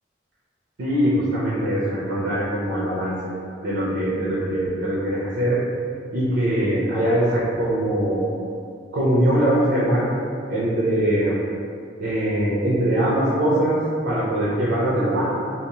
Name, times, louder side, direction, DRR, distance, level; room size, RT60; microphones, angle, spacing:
voice 1, 0.8-3.3 3.6-5.6 6.1-8.3 8.9-10.1 10.5-11.3 12.0-13.8 14.0-15.2, right 1 dB, 70° right, -7 dB, 0.5 m, -22 dB
2.7 x 2.0 x 2.8 m, 2.3 s
head